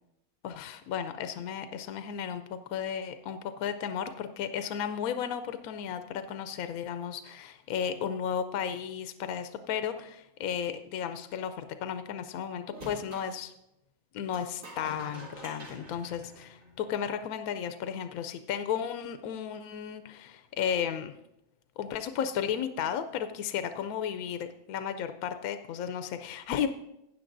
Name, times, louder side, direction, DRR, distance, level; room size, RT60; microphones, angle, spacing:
voice 1, 0.4-13.5 14.1-21.1 21.8-26.7, left 8 dB, 75° left, 9 dB, 1.0 m, -34 dB
sound 1, 12.7-13.3 14.3-17.0, equal, 60° right, 2.9 m, -46 dB
15.5 x 9.6 x 2.6 m, 0.84 s
omnidirectional pair, 1.6 m